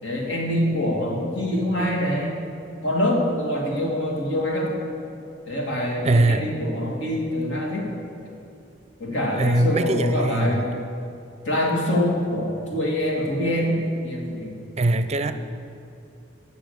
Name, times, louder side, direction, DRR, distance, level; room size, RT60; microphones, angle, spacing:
voice 1, 0.0-2.4 2.8-4.7 5.5-7.9 9.0-10.7 11.4-14.6, left 1 dB, 75° left, -1 dB, 2.3 m, -25 dB
voice 2, 6.0-6.5 9.4-10.7 14.8-15.3, right 2 dB, 35° right, 10 dB, 0.5 m, -21 dB
11.5 x 6.9 x 8.3 m, 2.6 s
head